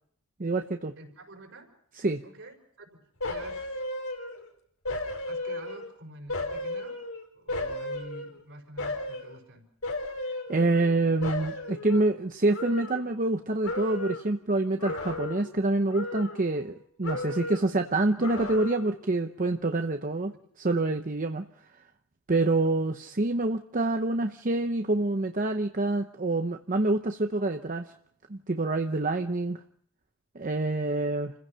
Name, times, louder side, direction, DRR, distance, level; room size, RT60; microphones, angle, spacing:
voice 1, 0.4-0.9 2.0-2.2 10.5-20.3 20.6-21.4 22.3-27.9 28.3-29.6 30.3-31.3, right 2 dB, 40° right, 6 dB, 0.8 m, -27 dB
voice 2, 1.0-1.7 2.2-3.8 5.3-7.0 7.3-9.7 17.7-18.5, right 1 dB, 60° right, 4 dB, 5.1 m, -47 dB
sound 1, 3.2-4.5 4.8-5.9 6.3-8.4 8.8-9.3 9.8-10.9 11.2-13.4 13.6-14.3 14.8-15.6 15.9-16.8 17.0-17.7 18.2-19.0 19.4-19.5, left 2 dB, 85° left, 4.4 m, -35 dB
29.5 x 16.0 x 5.7 m, 0.68 s
head